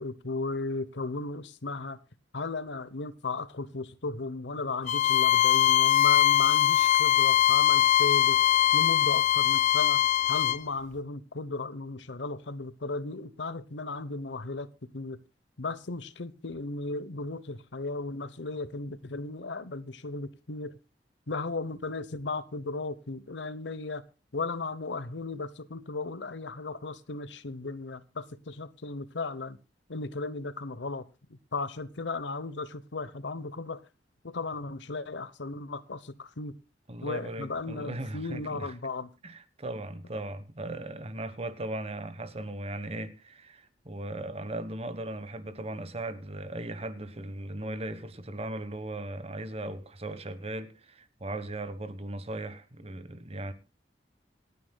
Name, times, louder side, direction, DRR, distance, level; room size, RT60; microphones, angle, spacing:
voice 1, 0.0-2.0 2.3-8.4 8.7-10.0 10.3-14.7 14.9-15.2 15.6-20.8 21.3-24.0 24.3-29.6 29.9-31.0 31.5-33.8 34.2-36.5 37.0-39.1, left 3 dB, 85° left, 0.9 m, -35 dB
Bowed string instrument, 4.9-10.6, left 11 dB, 45° left, 0.5 m, -22 dB
voice 2, 36.9-38.7 39.2-53.5, right 1 dB, 35° right, 1.3 m, -38 dB
27.0 x 9.6 x 2.3 m
head